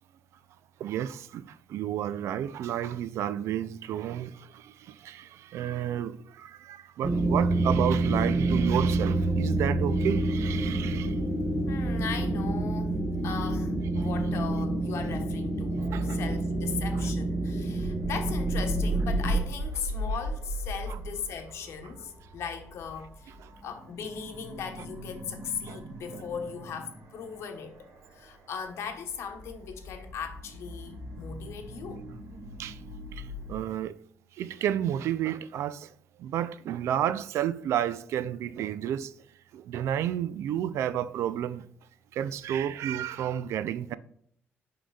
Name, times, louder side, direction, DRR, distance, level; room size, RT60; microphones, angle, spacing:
voice 1, 0.8-11.2 14.0-14.1 15.9-16.2 17.0-17.1 20.9-21.0 23.4-23.5 25.7-25.8 26.1-26.2 32.6-32.8 33.1-33.9 34.4-35.9 36.2-39.1 39.5-41.6 42.1-44.0, right 10 dB, 80° right, 0.4 m, -31 dB
sound 1, 7.0-19.4, right 2 dB, 5° right, 0.9 m, -28 dB
voice 2, 11.7-13.0 13.2-23.3 23.6-32.0, left 7 dB, 70° left, 1.1 m, -38 dB
sound 2, 15.8-33.6, right 1 dB, 55° right, 1.4 m, -37 dB
11.5 x 3.9 x 2.3 m
cardioid pair, 140°, 5 cm